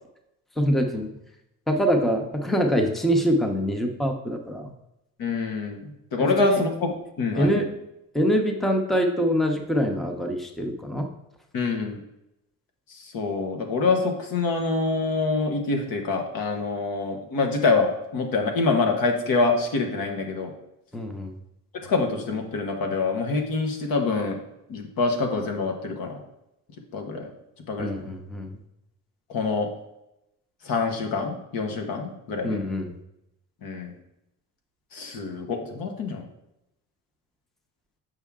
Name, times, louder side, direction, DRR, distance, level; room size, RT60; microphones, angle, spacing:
voice 1, 0.6-1.2 1.7-4.7 6.2-6.6 7.3-7.7 8.1-11.1 20.9-21.4 27.8-28.6 32.4-32.9, equal, ahead, 4 dB, 0.6 m, -24 dB
voice 2, 5.2-6.7 7.2-7.7 11.5-12.0 12.9-20.5 21.9-24.4 24.7-26.2 26.9-27.3 27.7-27.9 29.3-29.7 30.6-32.6 33.6-33.9 34.9-36.2, left 3 dB, 90° left, 3 dB, 1.3 m, -26 dB
7.3 x 5.5 x 3.6 m, 0.86 s
cardioid pair, 160°, 34 cm